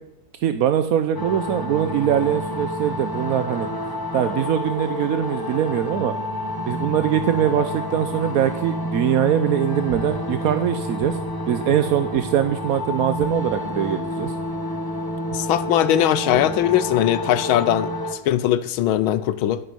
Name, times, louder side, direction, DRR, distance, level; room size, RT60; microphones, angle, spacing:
voice 1, 0.4-3.7 4.1-6.1 6.7-11.2 11.5-14.3, right 10 dB, 70° right, 9 dB, 0.8 m, -22 dB
sound 1, 1.1-18.1, left 1 dB, 20° left, 0.6 m, -29 dB
sound 2, 9.9-10.3 11.0-11.5 12.1-12.6 13.2-13.6 14.2-14.7 15.3-15.6 16.3-16.7, right 7 dB, 50° right, 1.3 m, -39 dB
voice 2, 15.3-17.9 18.2-19.6, left 12 dB, 80° left, 14 dB, 1.6 m, -20 dB
9.3 x 8.0 x 9.5 m, 0.82 s
omnidirectional pair, 2.2 m